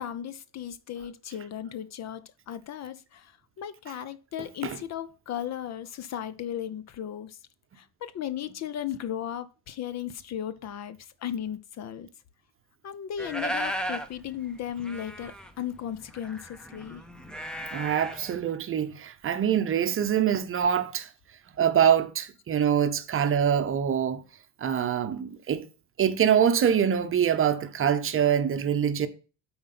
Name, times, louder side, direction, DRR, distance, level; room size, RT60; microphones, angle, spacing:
voice 1, 0.0-3.3 3.6-7.4 7.8-12.1 12.8-17.0, left 10 dB, 45° left, 0.6 m, -36 dB
sound 1, 13.2-14.1 14.4-14.5 14.7-18.3, equal, ahead, 0.7 m, -35 dB
voice 2, 17.7-21.1 21.6-24.2 24.6-25.7 26.0-29.1, right 8 dB, 35° right, 0.8 m, -24 dB
7.5 x 4.3 x 5.8 m
cardioid pair, 140°, 37 cm